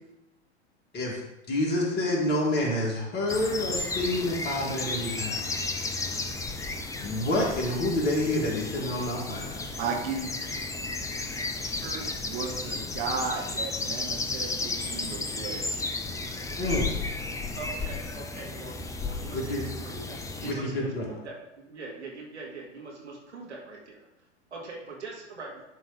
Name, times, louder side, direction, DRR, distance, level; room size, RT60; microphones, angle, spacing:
voice 1, 1.5-5.4 7.0-9.5 16.6-16.9 19.3-19.6 20.4-21.1, left 1 dB, 30° left, -2 dB, 2.6 m, -28 dB
sound 1, 3.3-20.5, left 3 dB, 10° left, 0.6 m, -33 dB
voice 2, 9.5-10.3 11.8-15.8, right 5 dB, 50° right, 1 dB, 1.7 m, -35 dB
voice 3, 17.6-24.1 24.5-25.6, right 3 dB, 75° right, -2 dB, 2.4 m, -42 dB
11.0 x 3.9 x 5.2 m, 0.91 s
figure-of-eight pair, 90°, 35 cm